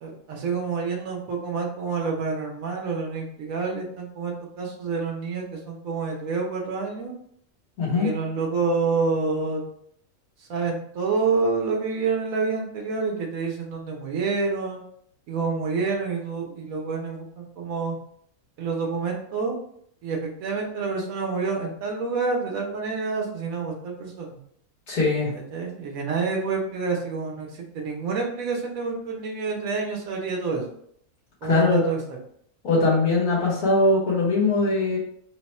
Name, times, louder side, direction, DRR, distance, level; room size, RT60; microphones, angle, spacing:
voice 1, 0.0-7.1 7.9-9.6 10.5-14.8 15.3-18.0 18.6-19.6 20.0-24.4 25.5-27.5 27.7-30.7 31.4-32.2, right 4 dB, 70° right, 0 dB, 1.3 m, -28 dB
voice 2, 24.9-25.3 31.5-31.8 32.6-35.0, left 3 dB, 80° left, -6 dB, 1.8 m, -21 dB
3.9 x 2.3 x 4.1 m, 0.66 s
omnidirectional pair, 1.6 m